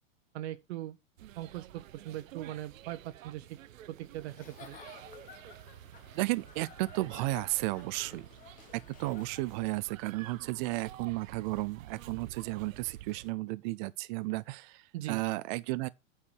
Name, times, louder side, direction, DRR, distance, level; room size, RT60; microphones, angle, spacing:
voice 1, 0.3-1.0 1.4-3.6 3.9-4.8 14.9-15.2, right 14 dB, 55° right, 1.0 m, -40 dB
sound 1, 1.2-13.3, right 12 dB, 80° right, 0.8 m, -50 dB
Giggle / Chuckle chortle, 4.3-9.8, left 8 dB, 20° left, 0.9 m, -54 dB
voice 2, 6.1-8.3 8.7-15.9, right 20 dB, 35° right, 0.5 m, -33 dB
8.8 x 4.8 x 6.3 m
hypercardioid pair, 140°, 40 cm